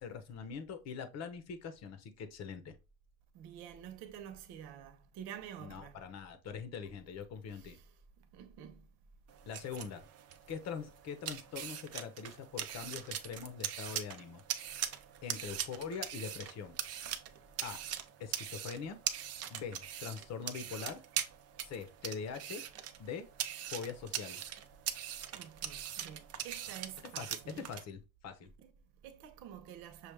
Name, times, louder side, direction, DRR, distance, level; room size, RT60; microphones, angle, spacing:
voice 1, 0.0-2.7 5.6-7.8 9.5-10.0 10.5-14.4 14.7-14.9 15.2-16.8 17.6-17.8 18.2-19.0 19.5-21.0 21.6-22.6 23.0-23.3 23.6-24.4 27.2-28.5, left 6 dB, 40° left, 0.9 m, -43 dB
voice 2, 3.3-6.0 7.5-7.9 8.3-8.9 25.3-27.6 28.6-30.1, right 9 dB, 70° right, 1.0 m, -49 dB
sound 1, 9.3-27.8, right 10 dB, 40° right, 0.6 m, -42 dB
6.4 x 2.4 x 3.4 m
cardioid pair, 145°, 38 cm